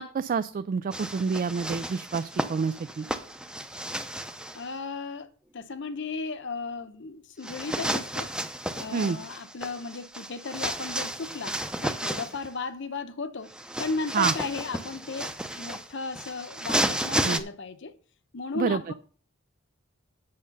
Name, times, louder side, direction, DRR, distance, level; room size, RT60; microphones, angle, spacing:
voice 1, 0.0-3.1 8.9-9.2 14.1-14.3 17.2-17.4 18.5-18.8, right 5 dB, 45° right, 0.3 m, -28 dB
sound 1, 0.9-4.6 7.4-12.5 13.5-17.4, right 1 dB, 5° right, 0.6 m, -32 dB
voice 2, 4.5-8.3 8.7-13.5 13.8-17.9 18.3-18.9, left 4 dB, 65° left, 0.8 m, -35 dB
8.7 x 6.6 x 5.3 m
head